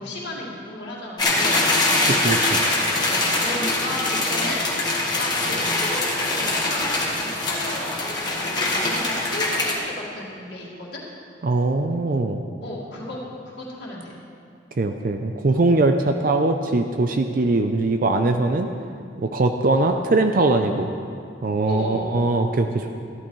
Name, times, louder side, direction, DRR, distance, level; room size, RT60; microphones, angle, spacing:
voice 1, 0.0-1.6 3.0-11.0 12.6-13.2 13.4-14.2 19.7-19.9 21.6-22.2, left 1 dB, 55° left, -6 dB, 2.0 m, -34 dB
sound 1, 1.2-9.7, left 2 dB, 20° left, 1.4 m, -23 dB
voice 2, 2.1-2.6 11.4-12.4 14.8-18.7 19.2-20.9 21.4-23.0, right 2 dB, 45° right, 6 dB, 0.4 m, -21 dB
13.5 x 12.0 x 3.2 m, 2.4 s
head